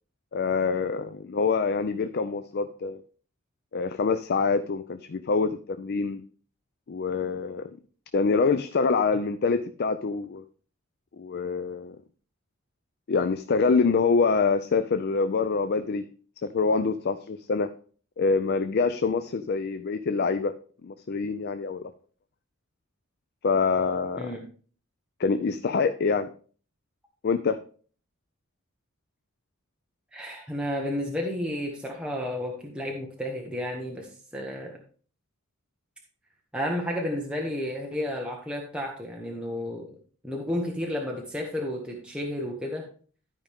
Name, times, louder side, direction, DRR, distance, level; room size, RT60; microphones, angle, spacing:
voice 1, 0.3-3.0 3.7-6.2 6.9-7.7 8.1-10.4 11.2-12.0 13.1-16.1 16.4-17.7 18.2-20.5 20.8-21.8 23.4-24.3 25.2-26.3 27.2-27.6, left 4 dB, 50° left, 10 dB, 0.4 m, -25 dB
voice 2, 30.1-34.8 36.5-40.0 40.2-42.9, left 1 dB, 5° right, -1 dB, 1.0 m, -32 dB
12.5 x 5.0 x 3.5 m, 0.42 s
head